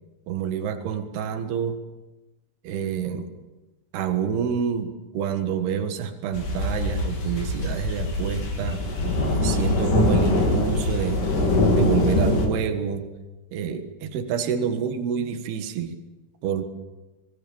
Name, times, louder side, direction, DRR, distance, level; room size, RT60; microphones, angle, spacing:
voice 1, 0.3-1.8 2.7-3.3 3.9-4.9 5.2-8.8 9.3-11.2 11.7-13.1 13.5-15.9 16.4-16.7, right 7 dB, 75° right, 7 dB, 3.6 m, -28 dB
sound 1, 6.3-12.5, left 1 dB, 55° left, 4.8 m, -23 dB
27.0 x 20.5 x 7.2 m, 1.1 s
omnidirectional pair, 4.7 m